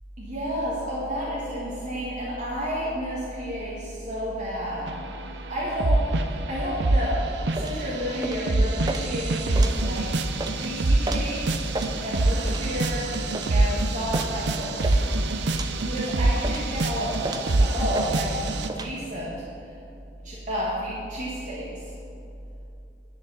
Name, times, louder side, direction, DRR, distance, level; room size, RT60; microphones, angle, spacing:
voice 1, 0.2-15.0 15.8-18.4 18.7-19.8 20.2-22.0, equal, 45° right, -7 dB, 1.8 m, -31 dB
sound 1, 4.9-6.5 6.8-18.7, right 2 dB, 70° right, 0.6 m, -25 dB
sound 2, 7.5-18.9, right 2 dB, 25° right, 0.6 m, -36 dB
10.0 x 6.5 x 7.2 m, 2.7 s
head